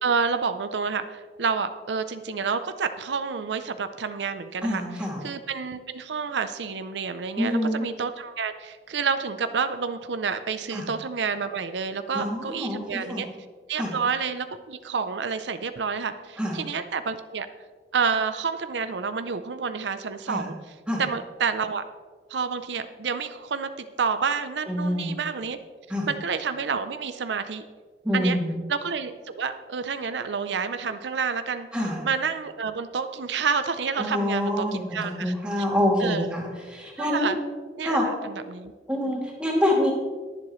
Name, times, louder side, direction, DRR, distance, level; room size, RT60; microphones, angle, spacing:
voice 1, 0.0-4.8 5.2-13.3 13.7-17.5 17.9-20.5 21.0-21.8 22.3-25.6 26.1-27.6 28.1-28.4 28.7-31.7 32.0-35.3 36.0-36.3 37.0-37.4 37.8-38.7, right 5 dB, 85° right, 10 dB, 0.6 m, -29 dB
voice 2, 4.6-5.2 7.4-7.9 10.7-10.9 12.1-13.2 13.8-13.9 16.4-16.6 20.3-20.5 20.9-21.0 24.7-25.2 25.9-26.1 28.0-28.6 31.7-32.0 34.0-37.3 37.8-38.0 38.9-39.9, left 1 dB, 5° right, -3 dB, 2.4 m, -26 dB
21.0 x 7.6 x 3.1 m, 1.5 s
head